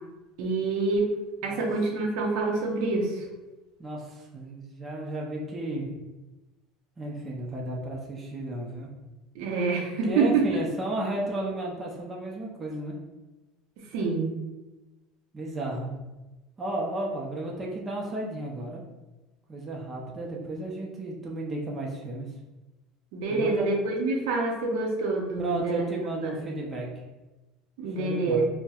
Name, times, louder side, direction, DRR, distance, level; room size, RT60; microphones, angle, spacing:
voice 1, 0.4-1.1 1.4-3.2 9.3-10.5 13.9-14.4 23.1-25.8 26.2-26.4 27.8-28.5, right 3 dB, 70° right, 0 dB, 0.7 m, -26 dB
voice 2, 3.8-6.0 7.0-8.9 10.0-13.0 15.3-15.9 16.6-18.8 19.5-22.3 23.3-23.7 25.4-26.9 28.0-28.5, right 2 dB, 20° right, -2 dB, 0.6 m, -33 dB
4.1 x 2.1 x 2.4 m, 1.1 s
supercardioid pair, 130°, 0 cm